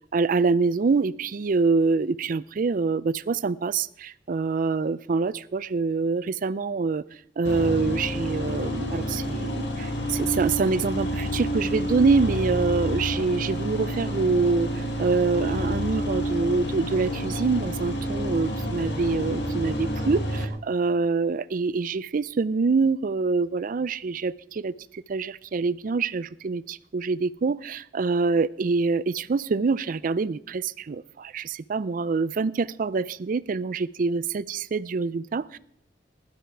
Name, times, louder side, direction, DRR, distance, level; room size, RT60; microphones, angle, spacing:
voice 1, 0.1-7.0 7.4-35.6, right 4 dB, 50° right, 18 dB, 0.4 m, -25 dB
sound 1, 7.4-20.4, equal, 75° left, 1.8 m, -29 dB
15.5 x 12.5 x 4.6 m, 0.72 s
head